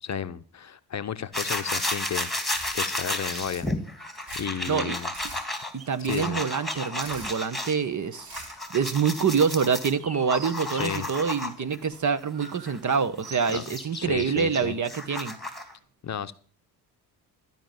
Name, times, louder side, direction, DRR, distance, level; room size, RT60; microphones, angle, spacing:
voice 1, 0.0-3.7 4.4-5.1 6.0-6.4 10.7-11.1 13.5-13.6 13.9-14.7 16.0-16.3, left 8 dB, 35° left, 0.8 m, -33 dB
sound 1, 1.3-7.7 8.1-11.8 12.3-15.7, left 1 dB, ahead, 2.5 m, -33 dB
sound 2, 2.4-2.8 3.2-3.7 4.1-4.6 5.0-5.4 6.0-6.4 6.9-7.4 8.2-8.6, right 2 dB, 65° right, 4.8 m, -42 dB
voice 2, 5.7-8.4 8.7-15.4, right 6 dB, 40° right, 1.3 m, -26 dB
13.0 x 5.5 x 9.0 m
hypercardioid pair, 50°, 47 cm